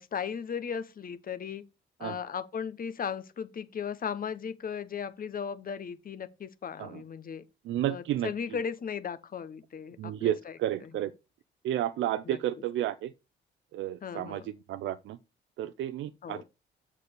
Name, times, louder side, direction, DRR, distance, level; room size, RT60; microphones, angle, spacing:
voice 1, 0.0-1.6 2.0-7.4 7.9-10.9 12.3-12.4 14.0-14.5 16.2-16.4, left 7 dB, 45° left, 1.0 m, -36 dB
voice 2, 7.6-8.3 10.0-11.1 11.6-13.1 13.7-15.2 15.6-16.4, right 12 dB, 75° right, 0.5 m, -32 dB
6.7 x 4.9 x 6.7 m
cardioid pair, 90°, 20 cm